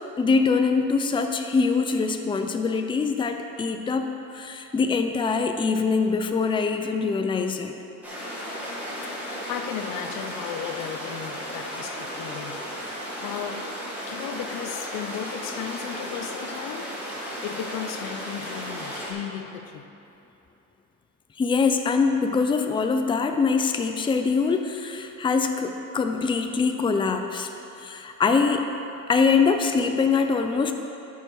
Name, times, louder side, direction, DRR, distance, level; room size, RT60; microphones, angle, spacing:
voice 1, 0.2-7.7 21.4-27.5 27.8-28.7 29.1-30.7, left 4 dB, 15° left, 5 dB, 0.4 m, -23 dB
sound 1, 8.0-19.1, equal, 5° right, 2.1 m, -34 dB
voice 2, 9.5-13.7 14.1-16.9 17.4-19.9, left 9 dB, 90° left, 8 dB, 0.7 m, -35 dB
12.5 x 5.6 x 4.6 m, 2.9 s
cardioid pair, 140°, 32 cm